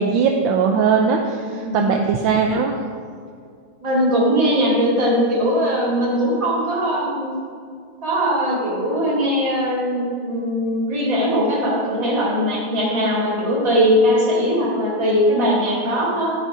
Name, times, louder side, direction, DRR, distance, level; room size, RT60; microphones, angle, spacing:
voice 1, 0.0-2.8, right 5 dB, 80° right, 2 dB, 1.3 m, -19 dB
voice 2, 1.5-1.9 3.8-7.3 8.0-16.3, equal, 45° right, -6 dB, 2.7 m, -20 dB
12.0 x 5.2 x 4.9 m, 2.2 s
omnidirectional pair, 2.1 m